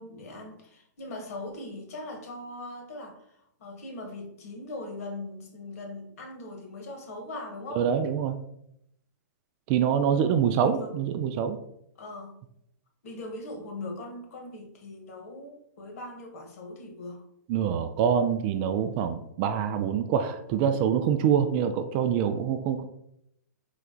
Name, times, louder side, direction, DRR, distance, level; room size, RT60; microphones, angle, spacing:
voice 1, 0.0-3.3 3.6-7.9 10.0-11.0 12.0-12.4 13.0-17.2, left 2 dB, 55° left, 3 dB, 1.3 m, -40 dB
voice 2, 7.8-8.4 9.7-11.6 17.5-22.8, right 8 dB, 35° right, 9 dB, 0.4 m, -25 dB
4.1 x 3.2 x 3.7 m, 0.77 s
figure-of-eight pair, 120°, 10 cm